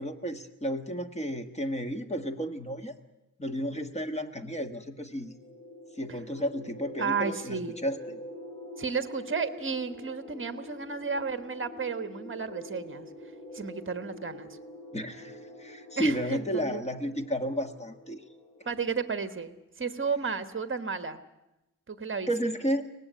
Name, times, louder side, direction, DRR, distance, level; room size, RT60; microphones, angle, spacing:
voice 1, 0.0-3.0 3.4-5.3 6.0-8.2 14.9-18.2 22.3-22.9, equal, 20° left, 7 dB, 1.4 m, -32 dB
sound 1, 5.1-19.5, left 1 dB, 35° left, 6.9 m, -46 dB
voice 2, 7.0-7.8 8.8-13.1 13.5-14.5 16.0-16.8 18.6-21.2 21.9-22.3, right 5 dB, 35° right, 10 dB, 1.3 m, -33 dB
23.5 x 18.5 x 9.3 m, 0.94 s
wide cardioid pair, 165°, 33 cm